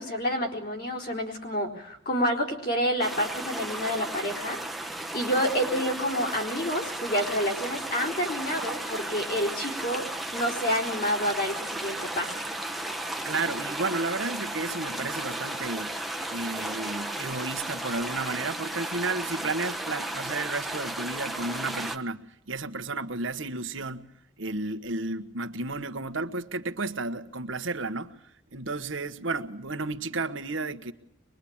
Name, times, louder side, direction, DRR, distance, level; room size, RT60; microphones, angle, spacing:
voice 1, 0.0-4.6 5.1-12.4, equal, 50° left, 4.2 m, -29 dB
sound 1, 3.0-22.0, right 1 dB, ahead, 1.0 m, -34 dB
voice 2, 13.2-16.0 16.3-24.1 24.4-28.1 28.5-30.9, right 3 dB, 75° right, 1.3 m, -32 dB
23.5 x 22.0 x 8.8 m
head